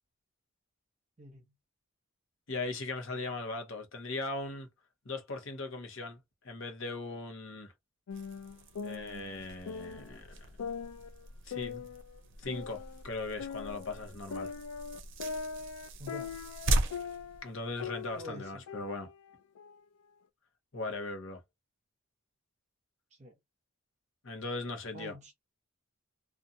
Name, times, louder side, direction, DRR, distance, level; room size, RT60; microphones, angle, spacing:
voice 1, 2.5-4.7 5.0-6.2 6.4-7.7 8.8-10.5 11.4-11.8 12.4-14.5 17.4-19.1 20.7-21.4 24.2-25.2, left 3 dB, 55° left, 0.8 m, -39 dB
sound 1, 8.1-10.2 10.6-13.0 13.4-17.5 17.8-19.8, left 6 dB, 90° left, 0.4 m, -41 dB
sound 2, 8.1-18.2, right 2 dB, 55° right, 0.5 m, -39 dB
voice 2, 16.0-16.4 18.2-18.6 23.2-23.3 24.9-25.3, equal, 30° right, 0.8 m, -46 dB
2.5 x 2.2 x 2.6 m
head